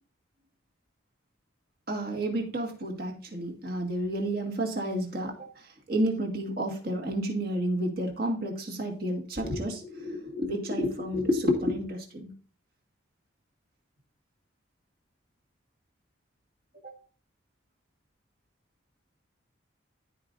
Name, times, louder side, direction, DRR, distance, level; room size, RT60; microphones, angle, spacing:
voice 1, 1.9-5.4 5.9-12.3 16.8-16.9, equal, 50° right, 2 dB, 2.0 m, -30 dB
14.5 x 5.0 x 2.6 m, 0.41 s
head